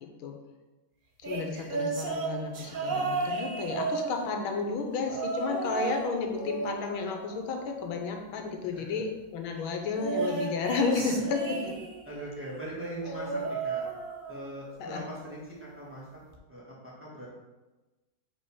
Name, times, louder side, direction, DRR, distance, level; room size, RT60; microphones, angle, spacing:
voice 1, 1.2-11.8 14.8-15.0, left 4 dB, 90° left, 3 dB, 1.7 m, -32 dB
sound 1, 1.2-4.5 5.1-6.1 6.3-7.9 9.9-12.1 13.0-14.5 14.8-15.2 16.3-16.4, right 4 dB, 75° right, 0.4 m, -34 dB
voice 2, 8.7-9.0 10.9-11.2 12.0-13.8 14.3-16.0 16.5-17.3, right 1 dB, 5° right, -6 dB, 1.4 m, -41 dB
5.3 x 3.9 x 5.5 m, 1.1 s
omnidirectional pair, 2.2 m